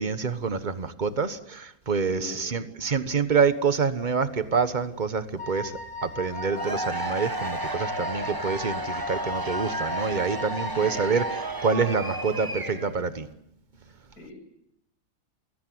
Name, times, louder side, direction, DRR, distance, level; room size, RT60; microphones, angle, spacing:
voice 1, 0.0-5.7 6.0-11.2 11.6-13.3, right 5 dB, 35° right, 12 dB, 1.3 m, -26 dB
voice 2, 2.1-2.6 10.8-11.0 14.2-14.3, left 3 dB, 75° left, 4 dB, 7.5 m, -41 dB
Wind instrument woodwind instrument, 5.4-11.5, left 2 dB, 35° left, 5.8 m, -36 dB
Cheering / Crowd, 6.3-13.0, right 2 dB, 15° right, 1.3 m, -33 dB
28.5 x 18.5 x 7.8 m, 0.77 s
omnidirectional pair, 1.6 m